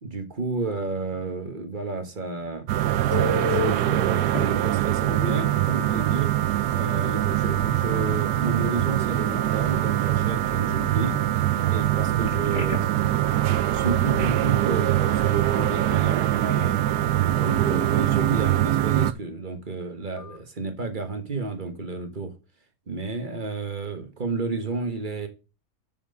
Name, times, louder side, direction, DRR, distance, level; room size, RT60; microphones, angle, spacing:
voice 1, 0.0-2.7 3.1-6.3 6.7-11.2 11.6-12.8 13.7-16.8 17.2-22.3 22.9-25.3, right 3 dB, 35° right, 1.3 m, -31 dB
sound 1, 2.7-19.1, right 13 dB, 85° right, 1.2 m, -23 dB
Telephone, 3.1-3.8 4.3-4.4 6.2-6.3 6.7-6.9 12.2-13.1 20.2-20.4, left 4 dB, 45° left, 1.8 m, -30 dB
7.3 x 5.8 x 5.2 m
omnidirectional pair, 1.7 m